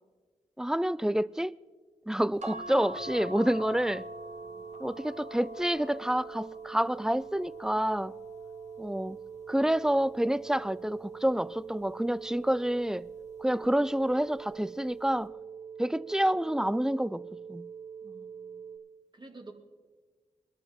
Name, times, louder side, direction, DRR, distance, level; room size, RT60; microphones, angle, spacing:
voice 1, 0.6-1.6 2.1-4.0 4.8-8.1 8.8-9.2 9.5-13.1 13.4-15.3 15.8-17.7, right 1 dB, 5° right, 0.3 m, -28 dB
sound 1, 2.4-9.0 9.7-11.1 12.3-12.7 13.1-13.2, left 1 dB, 60° right, 1.3 m, -46 dB
sound 2, 2.9-18.8, right 7 dB, 85° right, 4.2 m, -44 dB
voice 2, 18.0-18.6 19.1-19.5, right 2 dB, 35° right, 2.3 m, -51 dB
21.0 x 12.5 x 3.7 m
cardioid pair, 45°, 13 cm